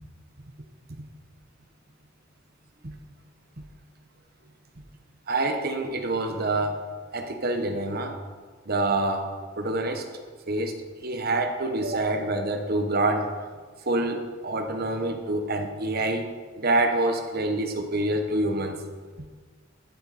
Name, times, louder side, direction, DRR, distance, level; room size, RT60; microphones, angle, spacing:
voice 1, 5.3-6.8 7.1-8.1 8.7-9.2 9.6-10.1 10.5-13.3 13.8-16.3 16.6-18.8, right 2 dB, 50° right, 6 dB, 1.2 m, -26 dB
11.5 x 11.0 x 4.2 m, 1.5 s
head